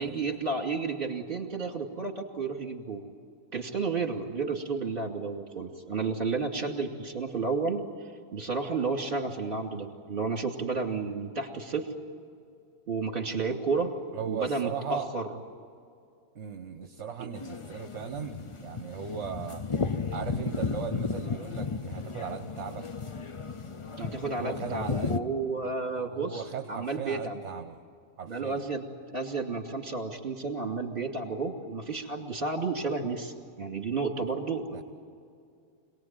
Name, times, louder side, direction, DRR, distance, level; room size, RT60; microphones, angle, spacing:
voice 1, 0.0-3.0 3.5-7.8 8.3-11.9 12.9-13.9 14.3-15.2 17.2-17.3 24.0-27.4 28.3-28.8 29.1-33.3 33.6-34.8, right 4 dB, 40° right, 3 dB, 2.7 m, -32 dB
voice 2, 14.1-15.1 16.3-19.7 20.1-22.9 24.4-25.1 25.6-27.8 28.2-28.6 34.2-34.3 34.7-34.8, right 7 dB, 55° right, 6 dB, 1.4 m, -38 dB
sound 1, 17.3-25.2, left 5 dB, 30° left, 0.6 m, -34 dB
26.5 x 19.0 x 9.1 m, 2.4 s
omnidirectional pair, 1.5 m